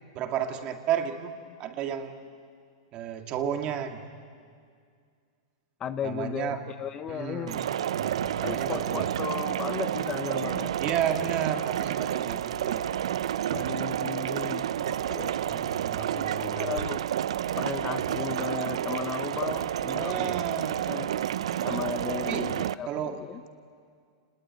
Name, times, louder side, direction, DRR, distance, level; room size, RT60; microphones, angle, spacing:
voice 1, 0.1-2.2 2.9-4.0 6.0-6.6 7.1-9.1 10.8-12.8 15.5-16.9 20.0-20.9 22.3-22.5 22.9-23.2, right 9 dB, 35° right, 5 dB, 2.2 m, -32 dB
voice 2, 5.8-7.6 8.4-10.7 13.5-17.1 17.6-20.3 20.9-21.2 21.6-23.4, left 8 dB, 25° left, 11 dB, 0.8 m, -36 dB
sound 1, 7.5-22.7, right 10 dB, 80° right, 0.6 m, -30 dB
29.5 x 20.0 x 9.5 m, 2.2 s
supercardioid pair, 145°, 3 cm